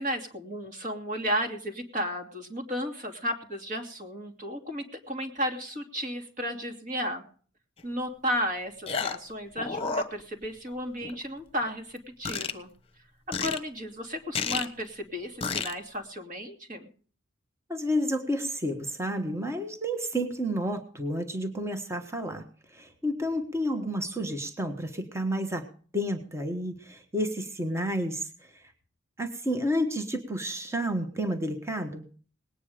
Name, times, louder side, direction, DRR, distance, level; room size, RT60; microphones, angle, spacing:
voice 1, 0.0-7.2 7.8-12.7 13.3-16.9, equal, 40° right, 4 dB, 2.7 m, -33 dB
sound 1, 7.8-7.9 8.9-9.3 9.6-10.7 11.0-11.2 12.2-12.5 13.3-13.6 14.3-14.6 15.4-15.7, left 5 dB, 30° left, 1.2 m, -30 dB
voice 2, 17.7-22.5 22.7-25.6 25.9-28.7 29.2-32.1, equal, 15° right, 6 dB, 1.4 m, -30 dB
19.5 x 9.6 x 5.0 m, 0.43 s
head